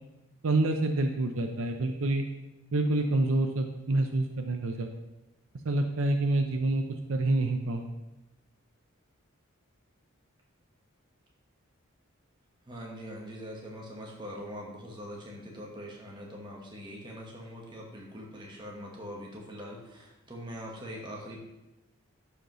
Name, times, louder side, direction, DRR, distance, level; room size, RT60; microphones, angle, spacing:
voice 1, 0.4-2.2 2.7-4.9 5.6-7.9, right 2 dB, 65° right, 5 dB, 0.6 m, -27 dB
voice 2, 12.7-21.4, equal, 20° right, -2 dB, 1.3 m, -42 dB
11.0 x 5.0 x 3.1 m, 0.96 s
head